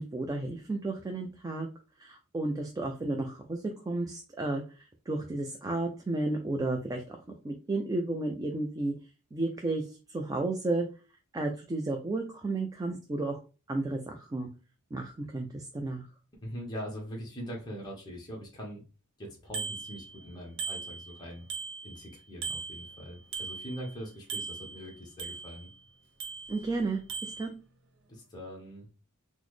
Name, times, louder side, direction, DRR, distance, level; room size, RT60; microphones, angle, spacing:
voice 1, 0.0-1.7 2.0-4.6 5.1-7.2 7.4-8.9 9.3-10.9 11.3-13.4 13.7-14.5 14.9-16.0 26.5-27.5, right 2 dB, 15° right, 3 dB, 0.3 m, -32 dB
voice 2, 16.4-18.8 19.2-21.4 21.8-25.7 28.1-28.9, equal, 20° left, -2 dB, 0.8 m, -42 dB
Bicycle bell, 19.5-20.3 20.6-22.1 22.4-24.0 24.3-25.7 26.2-26.8 27.1-27.5, right 5 dB, 60° right, 0.6 m, -39 dB
3.9 x 2.0 x 3.1 m, 0.33 s
head